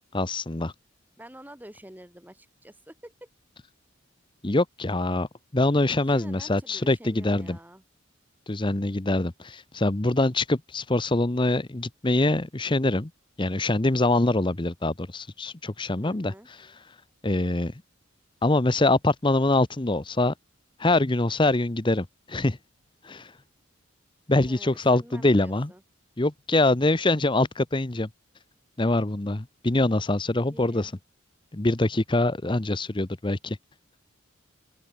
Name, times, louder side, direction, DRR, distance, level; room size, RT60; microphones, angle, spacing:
voice 1, 0.1-0.7 4.4-5.3 5.5-7.6 8.5-13.1 13.4-16.3 17.2-17.7 18.4-20.3 20.8-22.6 23.0-23.3 24.3-25.7 26.2-28.1 28.8-30.9 31.5-33.6, left 2 dB, 25° left, 0.8 m, -24 dB
voice 2, 1.2-3.3 6.1-7.8 16.0-16.5 24.4-25.8 30.5-30.9, right 1 dB, 10° right, 4.1 m, -48 dB
open air
head